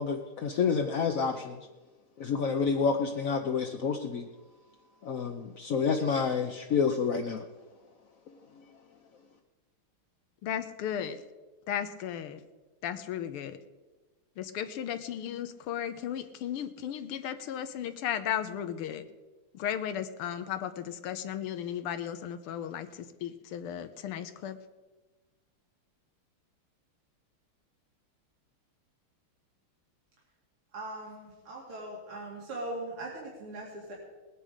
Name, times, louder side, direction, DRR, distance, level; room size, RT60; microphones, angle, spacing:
voice 1, 0.0-1.7 2.2-4.3 5.0-7.4, left 5 dB, 60° left, 3 dB, 0.8 m, -29 dB
voice 2, 10.4-11.2 11.7-12.4 12.8-13.6 14.4-19.0 19.5-22.9 23.2-24.6, left 9 dB, 90° left, 9 dB, 1.8 m, -35 dB
voice 3, 30.7-33.9, right 1 dB, 80° right, -4 dB, 3.6 m, -40 dB
19.5 x 9.9 x 5.1 m, 1.2 s
omnidirectional pair, 2.4 m